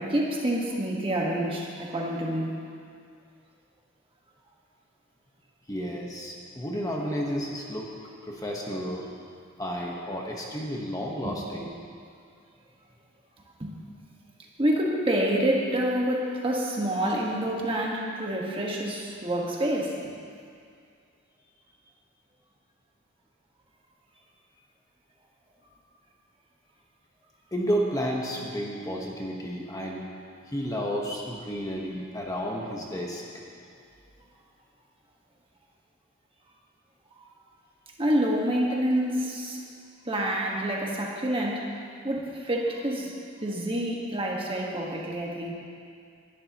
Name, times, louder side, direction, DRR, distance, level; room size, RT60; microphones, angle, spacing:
voice 1, 0.0-2.5 11.2-11.3 13.6-13.7 14.6-20.0 37.2-37.3 38.0-39.6 40.0-41.8 42.0-43.1 43.4-45.5, right 1 dB, 25° right, -2 dB, 1.5 m, -27 dB
voice 2, 5.7-7.9 8.2-9.1 9.6-11.7 27.5-30.0 30.5-33.4, equal, 15° left, -2 dB, 1.2 m, -31 dB
20.0 x 11.5 x 3.0 m, 2.3 s
head